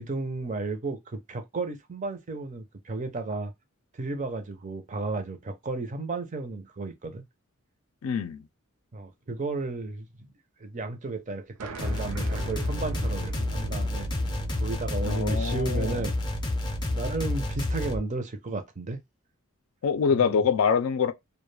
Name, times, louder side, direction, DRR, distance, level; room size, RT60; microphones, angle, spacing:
voice 1, 0.0-3.5 3.9-7.2 8.9-10.3 10.6-14.1 14.5-16.2 16.9-19.0 20.1-20.4, right 3 dB, 35° right, 0.5 m, -33 dB
voice 2, 8.0-8.5 15.1-16.0 19.8-21.1, left 6 dB, 75° left, 0.4 m, -25 dB
sound 1, 11.6-16.9, right 3 dB, 90° right, 0.5 m, -41 dB
sound 2, 11.8-18.0, left 1 dB, 20° left, 0.5 m, -30 dB
2.3 x 2.1 x 3.1 m
head